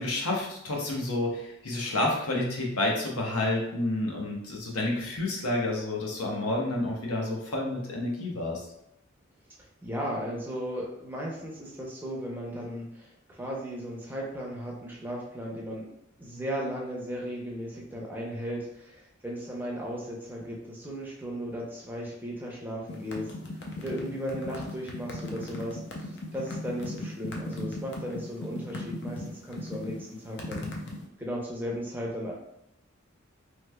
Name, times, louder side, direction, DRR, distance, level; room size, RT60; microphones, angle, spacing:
voice 1, 0.0-8.7, left 2 dB, 90° left, -1 dB, 0.8 m, -29 dB
voice 2, 9.8-15.9 16.2-23.3 23.8-30.7 31.2-32.3, equal, 10° right, -3 dB, 0.6 m, -36 dB
sound 1, 22.9-31.0, left 2 dB, 50° left, 0.5 m, -37 dB
3.2 x 3.1 x 2.2 m, 0.82 s
head